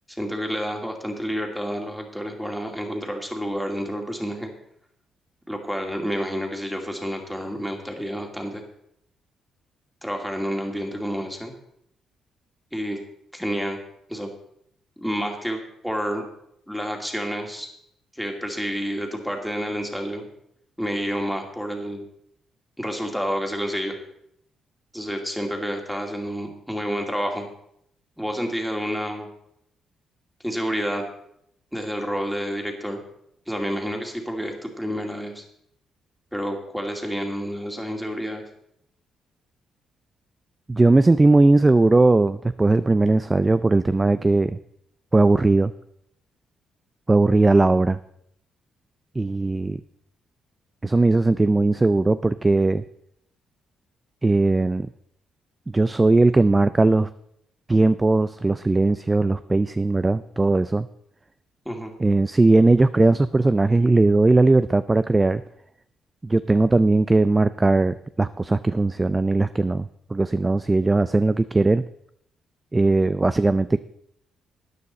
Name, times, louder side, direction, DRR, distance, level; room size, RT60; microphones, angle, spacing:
voice 1, 0.1-4.5 5.5-8.6 10.0-11.5 12.7-13.0 13.3-13.8 14.1-14.3 15.0-16.2 16.7-17.7 18.1-20.3 20.8-22.0 22.8-24.0 24.9-27.5 28.2-29.3 30.4-31.0 31.7-33.0 33.5-35.4 36.3-38.4 61.7-61.9, equal, ahead, 2 dB, 2.4 m, -29 dB
voice 2, 40.7-44.6 45.1-45.7 47.1-48.0 49.2-49.8 50.8-52.8 54.2-54.9 55.7-57.1 57.7-60.9 62.0-65.4 66.2-71.8 72.7-73.8, right 2 dB, 20° right, 13 dB, 0.4 m, -19 dB
13.0 x 9.5 x 4.2 m, 0.73 s
cardioid pair, 90°, 0 cm